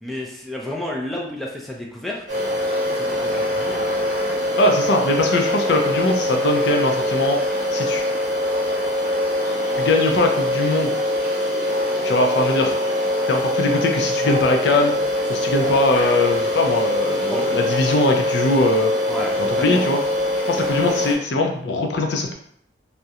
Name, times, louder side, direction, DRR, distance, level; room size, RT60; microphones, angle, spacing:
voice 1, 0.0-2.2 2.9-3.9 17.3-17.5 19.1-19.9, left 1 dB, ahead, -2 dB, 0.3 m, -31 dB
sound 1, 2.3-21.1, left 1 dB, 45° right, 0.9 m, -23 dB
voice 2, 4.6-7.4 7.7-8.1 9.8-10.9 12.0-12.8 13.3-14.9 15.3-18.9 19.4-20.0 20.5-22.3, left 2 dB, 70° left, 2 dB, 0.4 m, -21 dB
2.4 x 2.1 x 2.7 m, 0.68 s
head